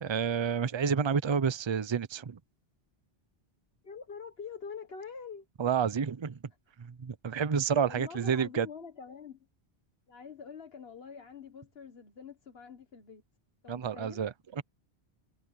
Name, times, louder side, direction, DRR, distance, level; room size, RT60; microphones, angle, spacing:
voice 1, 0.0-2.4 5.6-6.4 6.8-8.7 13.7-14.6, right 6 dB, 35° right, 0.5 m, -29 dB
voice 2, 3.8-5.5 7.7-9.4 10.1-13.2 13.6-14.2, left 6 dB, 65° left, 1.6 m, -45 dB
omnidirectional pair, 1.1 m